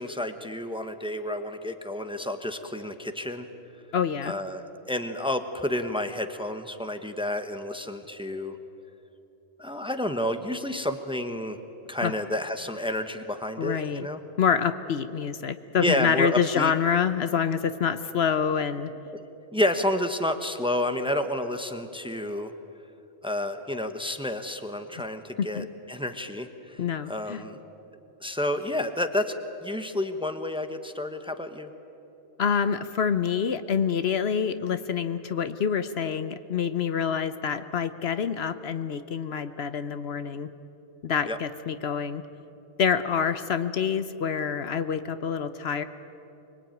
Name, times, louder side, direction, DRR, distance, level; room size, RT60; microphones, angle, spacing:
voice 1, 0.0-3.5 4.2-8.6 9.6-11.6 11.9-14.2 15.8-16.7 19.1-22.5 23.2-27.6 28.2-29.3 29.6-31.7 41.3-41.4, left 1 dB, 5° right, 7 dB, 1.1 m, -30 dB
voice 2, 3.9-4.3 12.0-12.1 13.6-14.1 14.4-18.9 25.4-25.7 26.8-27.4 32.4-40.5 41.0-42.2 42.8-45.8, left 7 dB, 65° left, 11 dB, 1.0 m, -27 dB
24.5 x 22.5 x 9.2 m, 2.9 s
omnidirectional pair, 1.2 m